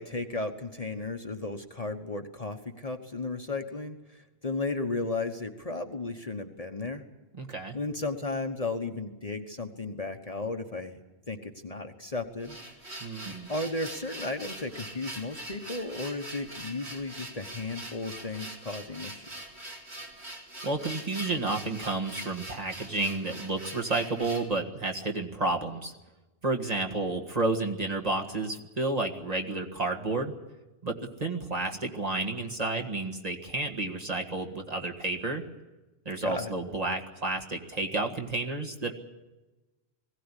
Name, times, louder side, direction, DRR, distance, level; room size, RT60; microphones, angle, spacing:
voice 1, 0.0-7.0 7.7-11.0 11.3-12.6 13.5-19.5 36.2-36.5, left 3 dB, 35° left, 5 dB, 1.2 m, -34 dB
voice 2, 7.3-7.8 13.0-13.5 20.6-25.9 26.4-30.3 30.8-35.5 36.1-38.9, right 2 dB, 35° right, 2 dB, 1.8 m, -31 dB
sound 1, 12.4-24.5, right 1 dB, 75° right, 3.3 m, -43 dB
20.5 x 17.0 x 9.9 m, 1.1 s
omnidirectional pair, 1.1 m